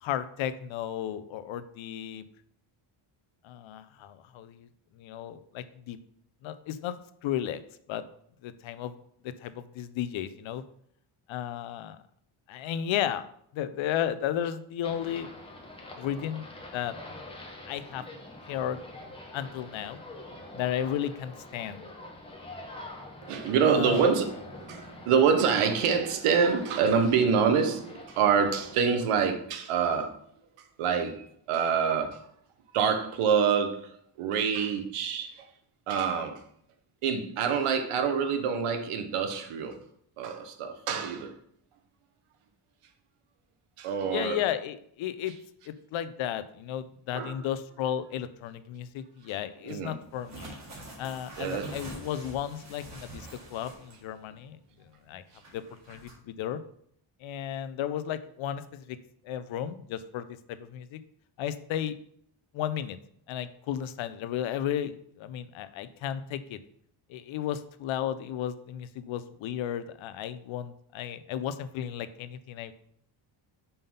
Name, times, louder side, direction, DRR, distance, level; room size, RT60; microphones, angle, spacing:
voice 1, 0.0-2.2 3.4-4.7 4.9-6.0 6.4-7.6 7.9-8.0 8.4-8.9 9.2-10.6 11.3-12.0 12.5-13.2 13.5-15.3 16.0-16.5 16.7-16.9 17.7-18.0 18.5-18.8 19.3-20.0 20.5-21.9 23.7-24.1 44.1-45.3 45.7-50.5 51.0-55.2 55.5-56.6 57.2-59.0 59.2-61.0 61.4-62.0 62.5-63.0 63.3-66.6 67.1-72.7, left 10 dB, 70° left, 13 dB, 0.6 m, -34 dB
sound 1, 14.8-28.8, left 2 dB, 10° left, 0.9 m, -45 dB
voice 2, 23.2-30.2 30.8-32.2 32.7-35.5 35.9-36.4 37.0-39.8 40.2-41.3 43.8-44.4 47.1-47.4 49.6-49.9 51.4-51.8, right 6 dB, 85° right, 7 dB, 1.0 m, -26 dB
sound 2, 50.1-54.1 54.4-54.5 55.4-56.1, right 2 dB, 35° right, 1.8 m, -45 dB
5.5 x 3.6 x 5.4 m, 0.68 s
cardioid pair, 165°, 50 cm